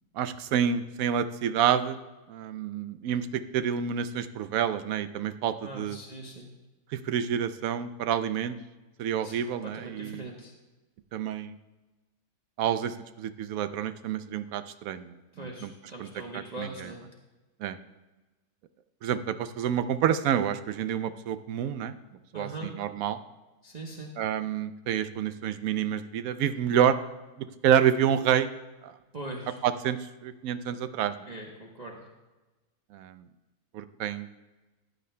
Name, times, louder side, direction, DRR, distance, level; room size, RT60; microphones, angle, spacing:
voice 1, 0.1-2.0 2.3-6.0 6.9-8.6 9.0-10.2 11.1-11.6 12.6-15.7 16.0-16.1 16.6-16.9 17.6-17.8 19.0-21.9 22.3-23.2 24.2-27.0 27.4-28.5 28.8-29.0 29.6-31.1 32.9-33.2 33.7-34.3, right 9 dB, 75° right, 12 dB, 1.0 m, -28 dB
voice 2, 5.6-6.5 9.2-9.3 9.6-10.5 15.3-17.0 22.3-22.7 23.6-24.1 29.1-29.6 31.3-32.0, right 2 dB, 35° right, -2 dB, 0.9 m, -41 dB
15.0 x 9.2 x 2.2 m, 1.2 s
omnidirectional pair, 1.6 m